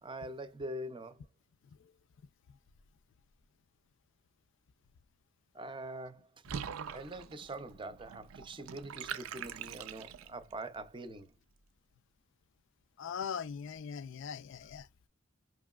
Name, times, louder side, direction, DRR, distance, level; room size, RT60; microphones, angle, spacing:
voice 1, 0.0-1.2 5.5-6.3 6.9-11.3, right 1 dB, 25° right, 0.5 m, -44 dB
Water / Bathtub (filling or washing), 6.4-10.5, right 8 dB, 75° right, 0.4 m, -43 dB
voice 2, 13.0-14.9, left 7 dB, 65° left, 0.4 m, -40 dB
4.9 x 2.9 x 2.3 m
head